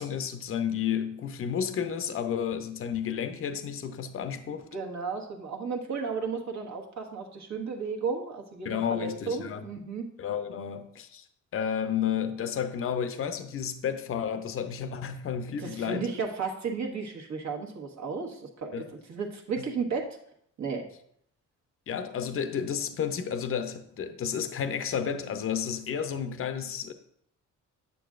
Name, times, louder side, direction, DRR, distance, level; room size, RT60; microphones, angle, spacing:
voice 1, 0.0-4.7 8.6-9.6 10.2-11.3 11.5-16.1 18.7-18.9 21.9-26.9, left 8 dB, 45° left, 0.6 m, -31 dB
voice 2, 4.7-10.1 15.6-20.2 20.6-20.9, right 5 dB, 60° right, 1.3 m, -34 dB
8.4 x 6.9 x 2.5 m
cardioid pair, 95°, 31 cm